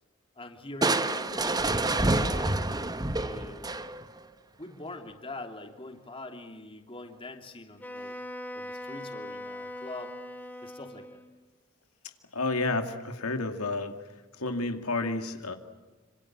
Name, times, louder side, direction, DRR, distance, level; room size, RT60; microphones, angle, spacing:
voice 1, 0.3-2.6 3.1-3.8 4.6-8.2 8.5-10.1 10.6-11.2, left 2 dB, 25° left, 5 dB, 3.0 m, -43 dB
Crushing, 0.8-4.2, right 2 dB, 20° right, 1.1 m, -27 dB
Wind instrument woodwind instrument, 7.8-11.4, left 1 dB, 10° left, 2.8 m, -41 dB
voice 2, 12.3-14.0 14.4-15.6, left 3 dB, 75° left, 6 dB, 2.4 m, -30 dB
27.0 x 26.5 x 7.5 m, 1.2 s
head